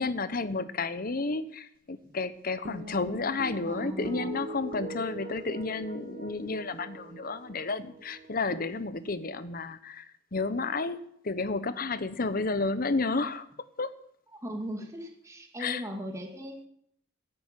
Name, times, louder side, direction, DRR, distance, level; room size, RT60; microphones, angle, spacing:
voice 1, 0.0-10.1 10.3-11.0 11.2-13.5 13.8-13.9 15.6-15.8, left 3 dB, 50° left, 13 dB, 1.0 m, -31 dB
sound 1, 2.7-9.2, right 1 dB, 50° right, 1.5 m, -42 dB
voice 2, 3.7-4.5 14.4-16.7, equal, 15° right, 2 dB, 2.3 m, -38 dB
15.5 x 8.9 x 9.2 m, 0.72 s
head